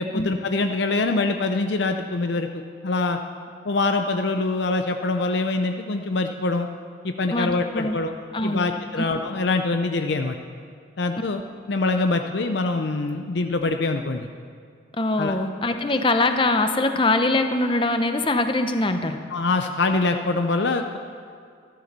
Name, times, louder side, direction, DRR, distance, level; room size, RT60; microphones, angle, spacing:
voice 1, 0.0-3.2 3.6-6.7 7.0-8.1 8.4-10.4 11.0-11.4 11.7-14.3 15.2-15.4 19.3-21.0, left 3 dB, 60° left, 6 dB, 0.6 m, -24 dB
voice 2, 7.3-8.0 8.3-8.7 15.0-19.2, left 2 dB, 25° left, 7 dB, 0.8 m, -22 dB
14.0 x 12.5 x 6.8 m, 2.2 s
head